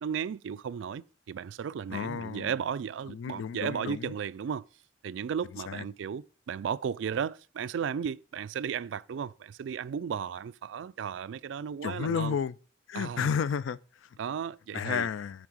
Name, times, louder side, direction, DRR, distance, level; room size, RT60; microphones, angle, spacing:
voice 1, 0.0-4.6 5.0-12.4 12.9-13.3 14.2-15.1, right 7 dB, 75° right, 0.3 m, -35 dB
voice 2, 1.9-2.5 3.1-4.1 5.7-5.8 11.8-12.6 12.9-14.1 14.7-15.5, left 7 dB, 80° left, 0.3 m, -32 dB
8.5 x 3.4 x 6.2 m
head